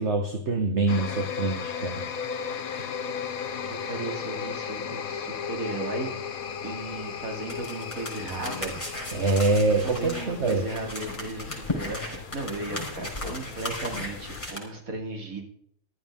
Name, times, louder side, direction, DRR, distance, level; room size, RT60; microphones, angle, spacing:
voice 1, 0.0-2.1 2.7-2.9 9.1-10.6, right 3 dB, 55° right, 4 dB, 1.7 m, -25 dB
sound 1, 0.9-14.5, left 7 dB, 90° left, 1.4 m, -36 dB
voice 2, 3.6-8.8 9.7-15.4, right 2 dB, 85° right, 2 dB, 3.1 m, -36 dB
sound 2, 7.5-14.6, left 2 dB, 20° left, 4.9 m, -36 dB
14.0 x 13.0 x 3.7 m, 0.63 s
omnidirectional pair, 1.4 m